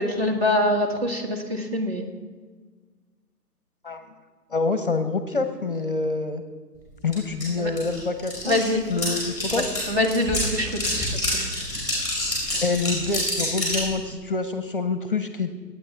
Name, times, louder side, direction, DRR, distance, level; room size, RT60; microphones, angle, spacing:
voice 1, 0.0-2.1 7.6-7.7 8.4-8.8 9.5-11.5, left 1 dB, 40° right, 2 dB, 1.8 m, -25 dB
voice 2, 4.5-6.4 7.0-9.7 12.6-15.5, left 3 dB, 35° left, 8 dB, 0.7 m, -26 dB
sound 1, 7.1-7.2 7.4-13.9, left 1 dB, 5° right, 4.7 m, -28 dB
23.5 x 9.0 x 3.4 m, 1.5 s
figure-of-eight pair, 150°, 47 cm